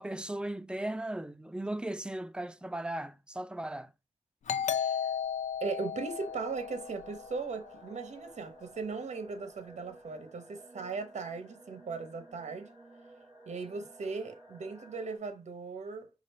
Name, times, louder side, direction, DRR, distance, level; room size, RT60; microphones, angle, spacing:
voice 1, 0.0-3.9, right 1 dB, 10° right, 0.4 m, -37 dB
Doorbell, 4.5-7.8, left 7 dB, 85° left, 0.4 m, -35 dB
voice 2, 4.7-5.1 5.6-12.7 13.5-16.1, right 4 dB, 75° right, 0.9 m, -38 dB
sound 1, 6.0-15.2, right 1 dB, 40° right, 2.5 m, -54 dB
5.1 x 2.5 x 4.2 m
wide cardioid pair, 90°, 12 cm